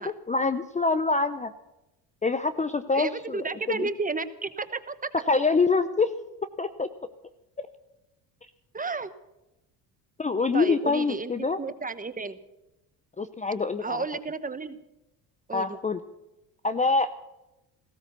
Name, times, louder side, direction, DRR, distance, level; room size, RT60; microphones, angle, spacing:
voice 1, 0.0-1.5 2.2-3.9 5.1-6.1 6.6-6.9 10.2-11.6 13.2-14.0 15.5-16.0 16.6-17.2, left 4 dB, 15° left, 12 dB, 0.6 m, -25 dB
voice 2, 2.9-5.1 8.7-9.1 10.5-11.3 11.6-12.4 13.8-14.8 15.5-15.8, right 4 dB, 20° right, 13 dB, 1.0 m, -32 dB
16.0 x 13.5 x 6.8 m, 0.94 s
supercardioid pair, 90°, 43 cm